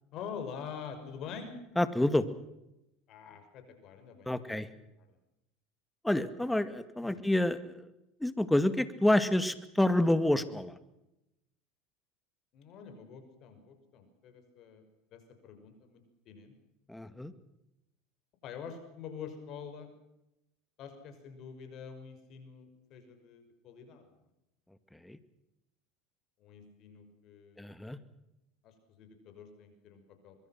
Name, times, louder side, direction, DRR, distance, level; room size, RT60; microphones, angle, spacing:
voice 1, 0.1-1.5 3.1-4.5 5.1-5.2 7.0-7.2 12.5-14.8 15.1-16.5 18.4-19.9 20.8-24.1 26.4-27.8 28.6-30.4, left 7 dB, 50° left, 8 dB, 6.1 m, -46 dB
voice 2, 1.8-2.3 4.3-4.7 6.0-7.9 8.2-10.8 16.9-17.3 24.9-25.2 27.6-28.0, left 1 dB, 5° left, 13 dB, 2.1 m, -28 dB
24.5 x 23.0 x 6.0 m, 0.88 s
supercardioid pair, 100°, 0 cm